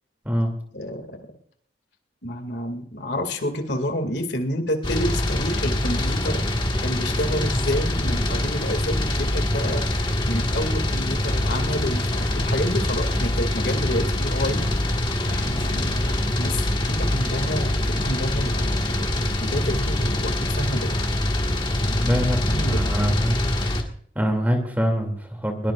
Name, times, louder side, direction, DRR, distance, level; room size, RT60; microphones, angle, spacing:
voice 1, 0.7-1.2 2.2-6.4 6.8-14.7 15.2-16.6 16.9-20.9 21.8-23.2, equal, 65° left, 5 dB, 2.3 m, -29 dB
sound 1, 4.8-23.8, left 1 dB, 25° left, 1.7 m, -24 dB
voice 2, 22.0-23.8 24.1-25.7, equal, 10° right, 4 dB, 2.6 m, -25 dB
22.0 x 19.0 x 2.5 m, 0.63 s
head